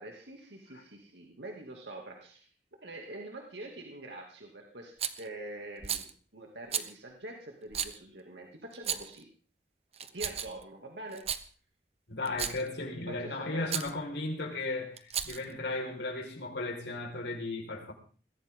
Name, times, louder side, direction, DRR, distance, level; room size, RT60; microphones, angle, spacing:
voice 1, 0.0-2.5 2.8-6.1 6.3-9.3 10.1-11.3 13.1-13.7, right 2 dB, 80° right, 1 dB, 2.7 m, -45 dB
Rattle, 5.0-5.3 5.8-6.1 6.7-6.9 7.7-8.0 8.7-9.2 9.9-10.6 11.1-11.4 12.3-12.7 13.7-13.9 15.0-15.5, right 9 dB, 35° right, 1.0 m, -34 dB
voice 2, 12.1-17.9, left 2 dB, 90° left, 2 dB, 5.2 m, -35 dB
21.5 x 16.0 x 3.9 m, 0.40 s
head